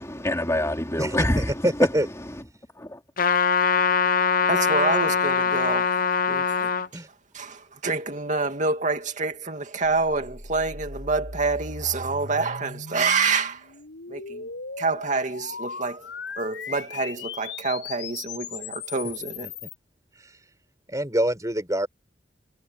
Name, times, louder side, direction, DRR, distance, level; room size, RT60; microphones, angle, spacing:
voice 1, 0.0-2.4 2.7-3.0, left 1 dB, 15° left, 3.3 m, -26 dB
voice 2, 1.6-2.1 6.9-7.1 19.6-19.7 20.9-21.9, right 1 dB, 20° right, 6.6 m, -24 dB
Trumpet, 3.2-6.9, left 6 dB, 50° left, 0.9 m, -22 dB
voice 3, 4.5-6.0 6.3-7.0 7.3-13.7 14.1-14.5 14.8-16.1 16.4-19.5, right 4 dB, 45° right, 2.5 m, -27 dB
sound 1, 9.8-19.8, left 4 dB, 80° left, 7.5 m, -38 dB
head